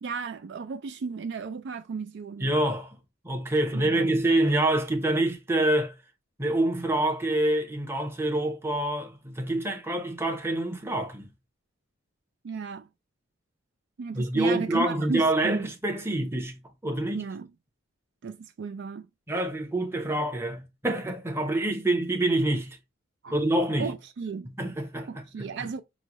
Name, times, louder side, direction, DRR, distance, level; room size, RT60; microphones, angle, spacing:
voice 1, 0.0-2.5 3.7-4.2 12.4-12.9 14.0-15.7 17.1-17.5 18.2-19.1 23.2-23.4 23.8-24.5 25.1-25.8, right 5 dB, 55° right, 0.3 m, -34 dB
voice 2, 2.4-3.0 3.2-5.9 6.4-11.3 14.1-17.3 19.3-22.8 23.3-23.9 24.4-25.7, right 1 dB, 10° right, 0.8 m, -26 dB
6.1 x 2.2 x 3.0 m
head